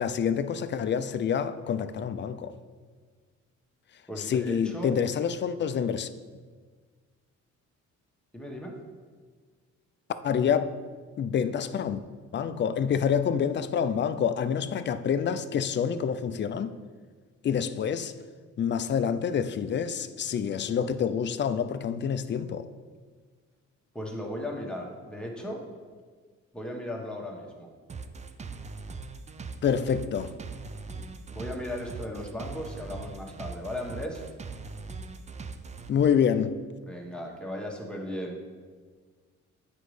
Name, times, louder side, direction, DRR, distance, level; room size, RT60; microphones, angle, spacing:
voice 1, 0.0-2.5 4.3-6.1 10.2-10.8 11.2-12.0 12.3-16.8 17.4-18.1 18.6-22.7 29.6-30.3 35.9-36.6, left 7 dB, 40° left, 0.4 m, -27 dB
voice 2, 4.1-4.9 8.3-8.7 23.9-25.6 26.5-27.7 31.3-34.2 36.9-38.4, left 1 dB, 5° left, 1.3 m, -36 dB
sound 1, 27.9-35.9, right 4 dB, 25° right, 0.4 m, -40 dB
8.0 x 5.1 x 3.2 m
cardioid pair, 90°, 30 cm